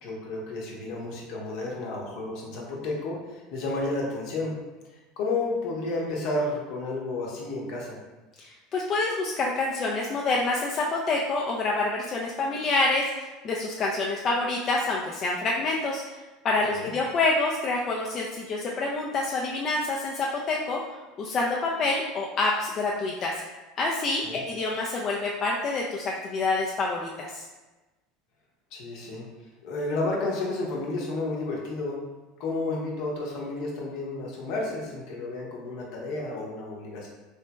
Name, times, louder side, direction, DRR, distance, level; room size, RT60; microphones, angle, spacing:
voice 1, 0.0-4.5 5.2-8.0 16.7-16.9 24.2-24.4 28.7-29.2 29.6-32.0 32.4-37.1, left 2 dB, 65° left, -2 dB, 0.8 m, -31 dB
voice 2, 8.4-20.8 21.2-23.3 23.8-27.4, left 3 dB, 40° left, -2 dB, 0.3 m, -27 dB
3.2 x 2.9 x 2.2 m, 1.2 s
hypercardioid pair, 90°, 0 cm